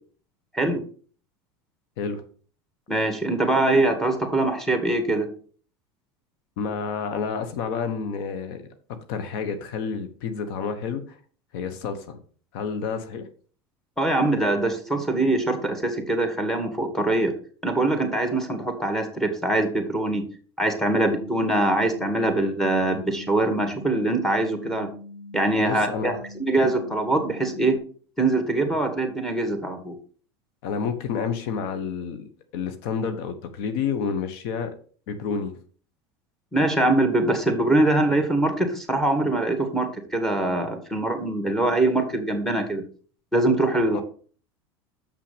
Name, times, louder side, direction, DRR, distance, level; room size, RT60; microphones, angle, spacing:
voice 1, 2.9-5.3 14.0-17.3 17.6-20.2 20.6-24.9 25.3-26.1 26.4-27.8 28.2-30.0 36.5-42.8 43.3-44.0, right 2 dB, 5° left, 6 dB, 2.0 m, -23 dB
voice 2, 6.6-8.7 9.1-11.2 11.5-12.2 12.5-13.3 25.6-26.1 30.6-34.7 35.1-35.6 43.9-44.0, left 6 dB, 70° left, 9 dB, 1.1 m, -29 dB
sound 1, 20.9-27.8, left 2 dB, 25° left, 2.2 m, -42 dB
6.7 x 6.0 x 5.0 m, 0.42 s
supercardioid pair, 100°, 13 cm